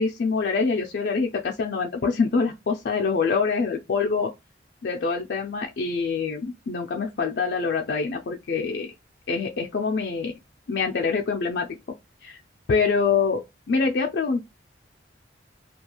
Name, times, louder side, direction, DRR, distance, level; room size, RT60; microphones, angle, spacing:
voice 1, 0.0-4.3 4.8-8.9 9.3-10.3 10.7-11.7 12.2-12.4 12.7-14.4, left 5 dB, 60° left, 0.4 m, -25 dB
2.4 x 2.3 x 2.8 m
head